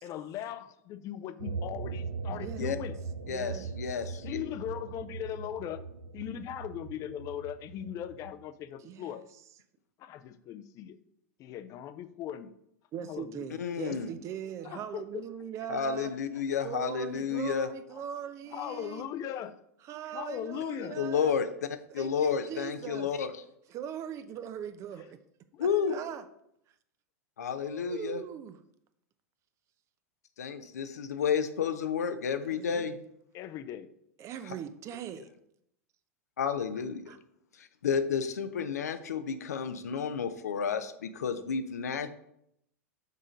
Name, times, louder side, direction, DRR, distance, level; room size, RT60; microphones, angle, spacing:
voice 1, 0.0-3.0 4.2-5.9 6.1-9.2 10.0-11.0 11.4-12.5 13.0-13.5 14.6-15.2 17.9-18.0 18.5-19.6 20.1-21.0 25.5-26.3 33.3-33.9, left 10 dB, 40° left, 12 dB, 0.5 m, -39 dB
sound 1, 1.4-8.3, right 4 dB, 85° right, 0.7 m, -40 dB
voice 2, 2.3-2.9 3.3-3.7 8.8-9.2 12.9-16.1 16.6-19.0 19.8-21.3 22.0-23.1 23.7-25.2 25.6-26.3 27.4-28.6 32.4-32.9 34.2-35.3 37.1-37.2, right 9 dB, 35° right, 11 dB, 0.6 m, -40 dB
voice 3, 3.3-4.4 13.6-14.1 15.7-17.7 20.9-21.5 21.9-23.3 25.6-25.9 27.4-28.2 30.4-33.0 36.4-37.0 37.6-42.1, left 7 dB, 75° left, 9 dB, 0.6 m, -31 dB
6.6 x 3.8 x 5.0 m, 0.76 s
hypercardioid pair, 95°, 9 cm